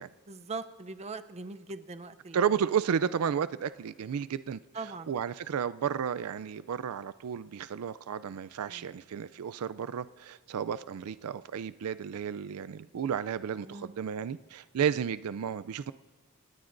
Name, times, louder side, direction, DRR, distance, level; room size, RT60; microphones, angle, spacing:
voice 1, 0.3-2.7 4.7-5.1 8.7-9.0 13.6-14.0, right 3 dB, 30° right, 10 dB, 0.6 m, -41 dB
voice 2, 2.3-4.6 5.1-15.9, right 7 dB, 80° right, 16 dB, 0.4 m, -32 dB
28.0 x 18.0 x 2.6 m, 1.5 s
head